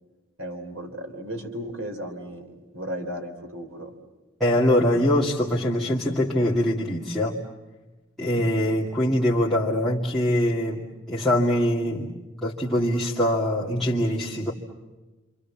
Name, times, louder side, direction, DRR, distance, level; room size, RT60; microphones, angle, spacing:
voice 1, 0.4-3.9, equal, 80° right, 5 dB, 3.6 m, -35 dB
voice 2, 4.4-7.4 8.2-12.1 12.4-14.5, left 1 dB, ahead, -9 dB, 2.3 m, -23 dB
28.0 x 27.0 x 7.3 m, 1.2 s
head